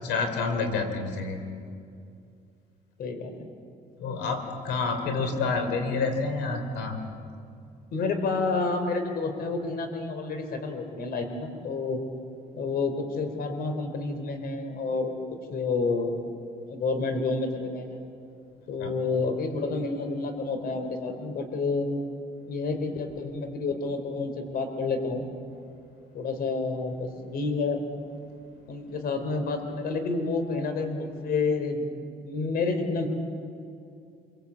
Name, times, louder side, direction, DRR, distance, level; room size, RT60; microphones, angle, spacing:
voice 1, 0.0-1.5 4.0-7.0 18.8-18.9, left 4 dB, 90° left, 6 dB, 3.8 m, -28 dB
voice 2, 3.0-3.5 7.9-12.0 12.5-15.2 15.5-16.2 16.7-18.0 18.7-21.9 22.5-25.2 26.1-27.8 28.7-31.8 32.2-33.1, left 3 dB, 60° left, 7 dB, 3.9 m, -29 dB
26.0 x 24.0 x 8.5 m, 2.4 s
cardioid pair, 110°, 17 cm